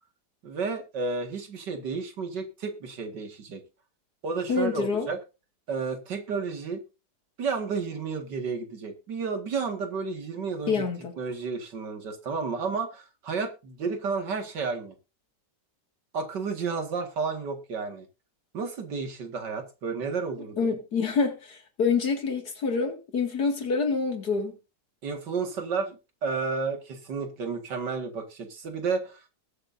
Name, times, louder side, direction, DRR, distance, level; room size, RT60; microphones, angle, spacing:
voice 1, 0.4-3.6 4.2-5.2 5.7-6.8 7.4-10.8 11.2-14.9 16.1-18.1 18.5-20.7 25.0-29.3, right 5 dB, 85° right, 2.6 m, -32 dB
voice 2, 4.5-5.1 10.7-11.1 20.6-24.6, left 5 dB, 65° left, 2.8 m, -27 dB
21.0 x 8.3 x 2.7 m
omnidirectional pair, 1.8 m